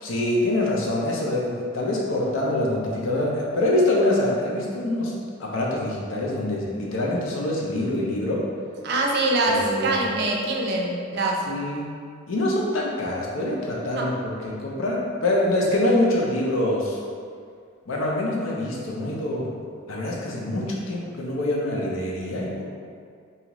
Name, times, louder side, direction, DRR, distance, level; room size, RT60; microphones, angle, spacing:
voice 1, 0.0-5.1 5.4-8.5 9.5-9.9 11.5-11.9 12.3-17.0 17.9-19.5 19.9-22.6, left 1 dB, 85° left, -3 dB, 0.5 m, -25 dB
voice 2, 8.8-11.5 13.9-14.1, right 2 dB, 55° right, -1 dB, 0.4 m, -24 dB
2.7 x 2.4 x 2.9 m, 2.2 s
head